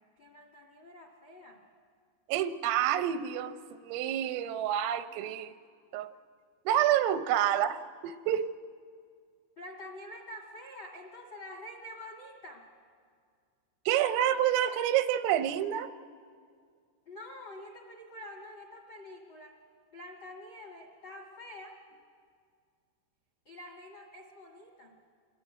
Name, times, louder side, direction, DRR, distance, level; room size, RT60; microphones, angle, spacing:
voice 1, 0.2-1.6 9.6-12.7 17.0-19.6 19.9-21.8 23.4-25.0, left 1 dB, 75° left, 4 dB, 1.0 m, -47 dB
voice 2, 2.3-5.6 5.9-6.1 6.7-8.5 13.9-15.9, right 11 dB, 85° right, 11 dB, 3.4 m, -28 dB
27.0 x 21.5 x 9.3 m, 2.1 s
omnidirectional pair, 5.9 m